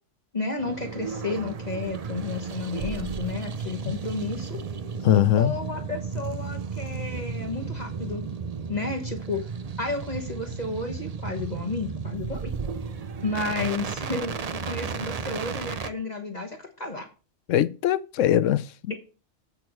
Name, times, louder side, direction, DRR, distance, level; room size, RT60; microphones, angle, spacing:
voice 1, 0.3-4.6 5.3-8.2 8.7-9.5 9.8-12.5 13.2-17.1 18.9-19.0, left 3 dB, 35° left, 1.5 m, -32 dB
sound 1, 0.6-15.9, right 5 dB, 45° right, 0.5 m, -34 dB
voice 2, 5.0-5.5 17.5-19.0, left 11 dB, 90° left, 1.0 m, -21 dB
10.5 x 8.3 x 3.1 m
omnidirectional pair, 1.3 m